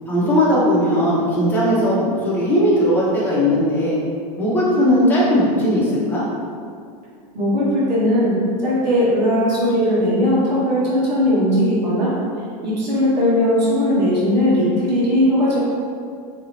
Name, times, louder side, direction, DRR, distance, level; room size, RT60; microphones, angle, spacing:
voice 1, 0.1-4.0 4.4-6.2, equal, 10° left, -9 dB, 1.1 m, -18 dB
voice 2, 7.3-8.3 8.6-12.1 12.6-15.6, left 1 dB, 90° right, -7 dB, 1.4 m, -18 dB
3.6 x 3.1 x 3.2 m, 2.3 s
supercardioid pair, 135°, 21 cm